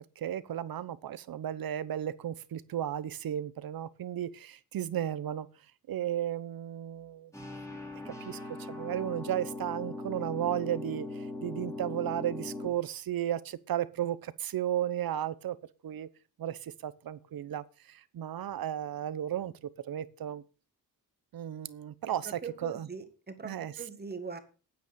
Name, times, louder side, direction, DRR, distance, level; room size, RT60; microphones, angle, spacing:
voice 1, 0.2-5.5 5.9-7.3 7.7-7.8 8.0-15.6 15.8-16.1 16.4-19.5 19.8-20.4 21.3-22.9 23.4-23.8, right 11 dB, 65° right, 0.9 m, -34 dB
sound 1, 7.3-12.7, left 2 dB, 10° left, 2.5 m, -40 dB
voice 2, 22.3-24.4, right 5 dB, 25° right, 1.8 m, -41 dB
9.3 x 8.2 x 6.8 m
wide cardioid pair, 125°, 38 cm